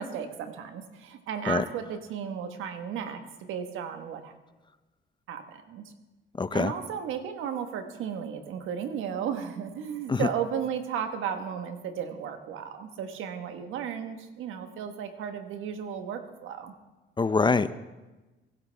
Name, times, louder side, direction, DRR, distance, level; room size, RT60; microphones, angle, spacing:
voice 1, 0.0-3.2 3.5-4.3 5.3-5.9 6.5-16.7, right 8 dB, 90° right, 7 dB, 1.4 m, -34 dB
voice 2, 6.4-6.7 10.1-10.3 17.2-17.8, left 4 dB, 25° left, 14 dB, 0.6 m, -24 dB
23.0 x 11.5 x 3.4 m, 1.1 s
cardioid pair, 90°, 20 cm